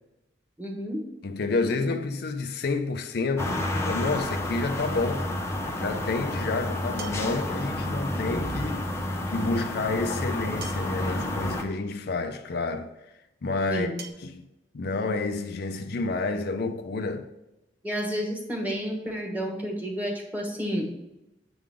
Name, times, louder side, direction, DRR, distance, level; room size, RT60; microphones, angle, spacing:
voice 1, 0.6-1.0 1.6-1.8 13.7-13.9 17.8-21.0, equal, 10° right, 1.3 m, -31 dB
voice 2, 1.2-5.3 5.8-8.8 9.3-12.9 13.4-13.9 14.2-14.4 14.7-17.3, left 3 dB, 60° left, 0.5 m, -29 dB
sound 1, 3.4-11.6, left 1 dB, 15° left, 0.7 m, -30 dB
sound 2, 7.0-7.5 9.0-9.1 10.6-11.1 12.3-12.4 14.0-14.1, right 4 dB, 60° right, 0.8 m, -42 dB
7.8 x 3.8 x 4.9 m
head